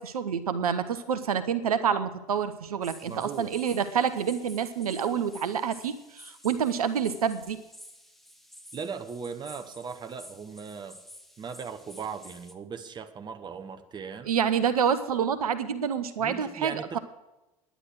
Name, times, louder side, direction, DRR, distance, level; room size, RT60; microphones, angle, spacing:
voice 1, 0.0-7.6 14.2-17.0, right 7 dB, 75° right, 12 dB, 0.6 m, -28 dB
sound 1, 2.8-12.5, equal, ahead, 1.1 m, -51 dB
voice 2, 3.0-3.5 8.7-11.0 11.4-14.3 16.2-17.0, right 6 dB, 25° right, 9 dB, 1.0 m, -38 dB
10.0 x 10.0 x 6.2 m, 1.0 s
figure-of-eight pair, 80°, 19 cm